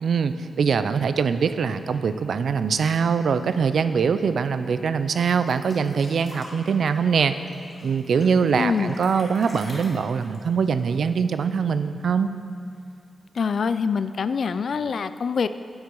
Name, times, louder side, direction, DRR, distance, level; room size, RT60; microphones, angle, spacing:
voice 1, 0.0-7.3 7.8-12.3, right 6 dB, 65° right, 11 dB, 0.4 m, -23 dB
sound 1, 5.3-11.7 12.0-12.1 12.4-13.1 13.9-14.0, left 1 dB, 30° left, 2.0 m, -45 dB
voice 2, 8.6-8.9 13.3-15.5, left 5 dB, 55° left, 12 dB, 0.3 m, -25 dB
9.6 x 8.1 x 5.4 m, 2.4 s
wide cardioid pair, 145°, 0 cm